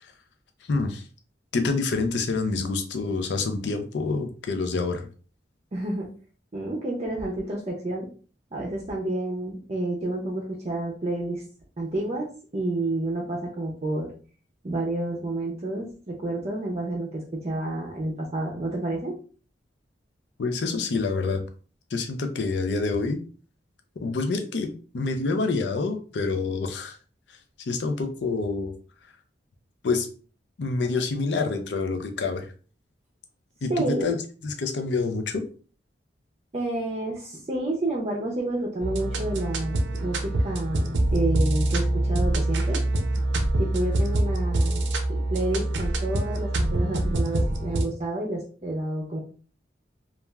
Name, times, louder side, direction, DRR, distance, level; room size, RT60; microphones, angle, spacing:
voice 1, 0.7-1.0 1.5-5.1 20.4-21.4 21.9-23.2 24.0-27.0 27.7-28.7 29.8-30.1 30.6-32.5 33.6-34.2 34.4-35.4, left 3 dB, 75° left, 6 dB, 0.5 m, -27 dB
voice 2, 5.7-6.1 6.5-8.1 8.5-11.4 11.8-14.1 14.6-19.1 33.7-34.2 36.5-42.8 43.6-49.2, right 2 dB, 35° right, -1 dB, 0.5 m, -30 dB
sound 1, 38.8-47.8, right 1 dB, 85° right, 0.5 m, -25 dB
3.1 x 2.4 x 2.3 m, 0.39 s
head